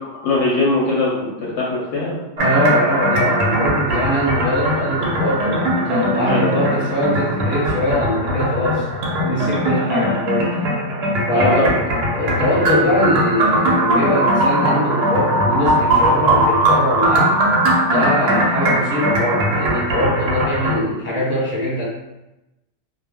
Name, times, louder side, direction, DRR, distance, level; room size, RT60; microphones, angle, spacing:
voice 1, 0.1-2.2 6.3-6.7 11.3-12.0, left 3 dB, 70° left, -5 dB, 0.8 m, -21 dB
voice 2, 2.4-8.9 9.2-10.5 11.3-11.8 12.1-17.4 17.9-21.8, left 1 dB, 10° left, -8 dB, 0.8 m, -21 dB
sound 1, 2.4-20.8, right 1 dB, 65° right, 0.7 m, -19 dB
2.2 x 2.0 x 3.3 m, 0.95 s
omnidirectional pair, 1.3 m